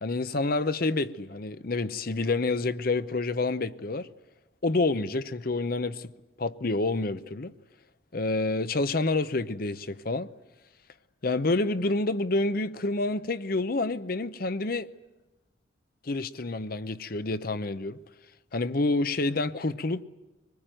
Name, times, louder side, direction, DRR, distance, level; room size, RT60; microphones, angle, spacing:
voice 1, 0.0-4.1 4.6-6.1 6.4-7.5 8.1-10.3 11.2-14.9 16.0-18.0 18.5-20.0, left 2 dB, 50° left, 0.8 m, -28 dB
24.0 x 20.5 x 9.1 m
head